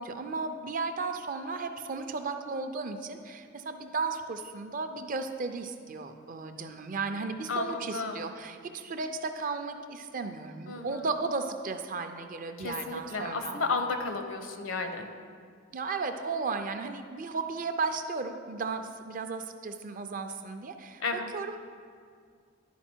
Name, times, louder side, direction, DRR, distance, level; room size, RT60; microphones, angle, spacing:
voice 1, 0.0-13.6 15.7-21.0 21.3-21.6, right 4 dB, 40° right, 7 dB, 0.5 m, -35 dB
voice 2, 7.5-8.3 10.7-11.1 12.6-15.1 21.0-21.3, left 3 dB, 75° left, 6 dB, 0.8 m, -33 dB
11.0 x 4.9 x 4.4 m, 2.1 s
head